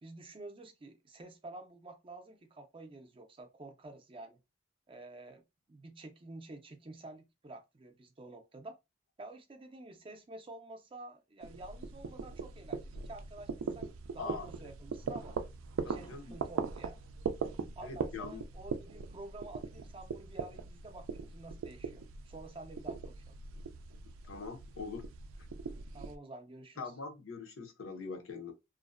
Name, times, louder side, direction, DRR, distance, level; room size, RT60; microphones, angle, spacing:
voice 1, 0.0-4.4 4.9-5.4 5.7-8.8 9.2-15.4 15.9-17.0 17.8-23.4 25.9-26.9, right 2 dB, 25° right, 0.4 m, -49 dB
sound 1, 11.4-26.1, right 5 dB, 90° right, 0.4 m, -41 dB
voice 2, 15.8-16.4 17.8-18.4 24.3-25.1 26.8-28.5, left 4 dB, 90° left, 0.7 m, -42 dB
2.6 x 2.0 x 2.4 m
head